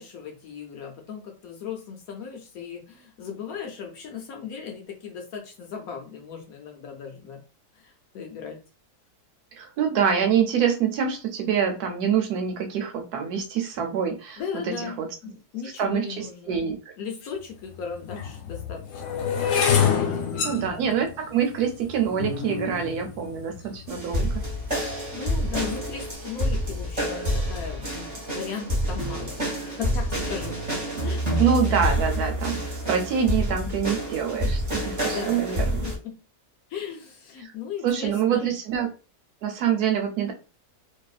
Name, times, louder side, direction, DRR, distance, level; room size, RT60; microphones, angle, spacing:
voice 1, 0.0-7.4 7.7-8.6 14.4-15.0 15.2-16.6 17.0-19.2 19.5-20.6 24.8-30.6 31.0-31.4 35.0-35.4 35.6-35.7 36.0-36.1 36.7-38.5, left 6 dB, 70° left, 2 dB, 1.0 m, -37 dB
voice 2, 9.5-15.1 15.8-16.8 20.4-24.4 31.4-35.8 37.4-37.5 37.8-38.9 39.4-40.3, right 7 dB, 75° right, 4 dB, 1.1 m, -25 dB
sound 1, 17.2-17.3 18.1-24.2 24.9-25.3 25.5-25.9, left 7 dB, 85° left, 1.3 m, -27 dB
sound 2, 23.9-36.0, equal, 30° right, 1.2 m, -28 dB
2.7 x 2.4 x 2.3 m, 0.32 s
omnidirectional pair, 1.7 m